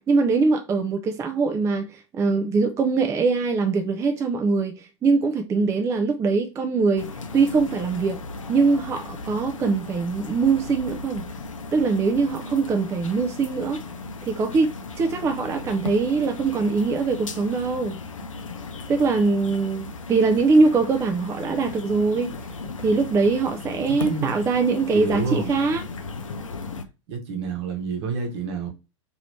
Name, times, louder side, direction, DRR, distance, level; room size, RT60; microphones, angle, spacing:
voice 1, 0.0-8.2 8.5-11.2 11.7-13.8 14.3-14.7 15.0-18.0 18.9-22.3 22.8-25.8, right 4 dB, 15° right, 0.4 m, -22 dB
sound 1, 7.0-26.9, left 3 dB, 80° left, 0.5 m, -36 dB
voice 2, 24.9-25.5 27.1-28.7, right 5 dB, 55° right, 1.1 m, -28 dB
3.0 x 2.7 x 2.9 m
figure-of-eight pair, 95°, 16 cm